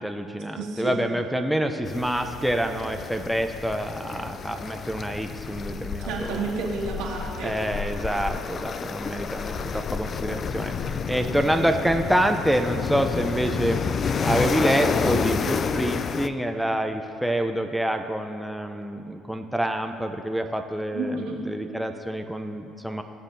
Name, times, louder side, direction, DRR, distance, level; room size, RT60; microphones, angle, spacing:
voice 1, 0.0-6.4 7.4-13.8 14.2-23.0, right 1 dB, ahead, 4 dB, 0.6 m, -27 dB
voice 2, 0.6-1.0 6.0-7.5 20.9-21.4, right 3 dB, 85° right, -5 dB, 2.2 m, -30 dB
sound 1, 1.9-16.3, left 6 dB, 45° left, 0.4 m, -30 dB
18.5 x 7.2 x 2.7 m, 2.7 s
supercardioid pair, 80°, 0 cm